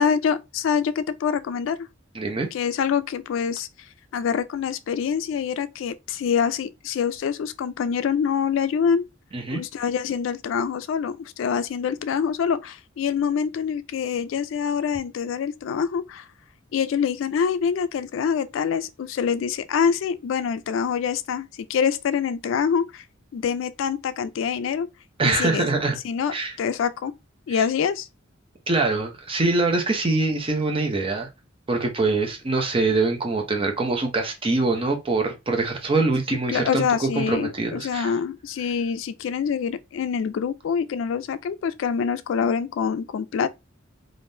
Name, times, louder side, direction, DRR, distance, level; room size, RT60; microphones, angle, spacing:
voice 1, 0.0-1.9 2.5-9.0 9.5-16.3 16.7-23.0 23.3-24.9 25.2-25.7 26.0-27.1 27.5-28.1 36.3-43.5, left 7 dB, 70° left, 0.3 m, -25 dB
voice 2, 2.1-2.5 9.3-9.6 25.2-26.0 26.3-26.5 27.5-27.6 28.7-31.3 31.7-38.1, right 3 dB, 25° right, 0.7 m, -24 dB
3.5 x 2.5 x 2.6 m
head